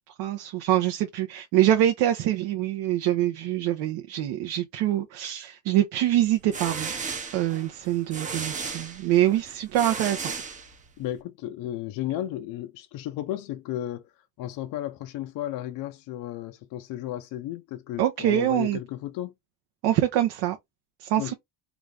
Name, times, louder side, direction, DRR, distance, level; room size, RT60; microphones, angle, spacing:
voice 1, 0.2-6.9 7.3-10.3 18.0-18.8 19.8-20.6 21.0-21.3, right 12 dB, 65° right, 0.8 m, -24 dB
sound 1, 6.2-11.1, right 5 dB, 15° right, 0.6 m, -35 dB
voice 2, 11.0-14.1 14.4-19.3 21.2-21.3, left 13 dB, 50° left, 0.5 m, -34 dB
3.9 x 2.4 x 3.2 m
cardioid pair, 145°, 45 cm